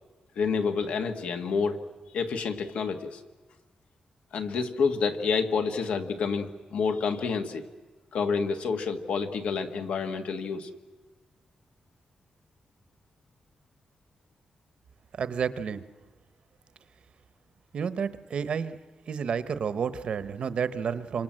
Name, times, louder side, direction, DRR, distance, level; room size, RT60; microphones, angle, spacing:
voice 1, 0.3-1.9 2.1-3.2 4.3-7.6 8.1-10.7, left 5 dB, 90° left, 6 dB, 1.8 m, -28 dB
voice 2, 15.1-15.8 17.7-18.8 19.1-21.2, right 6 dB, 55° right, 13 dB, 1.0 m, -30 dB
27.5 x 26.0 x 7.7 m, 1.2 s
wide cardioid pair, 175°, 2 cm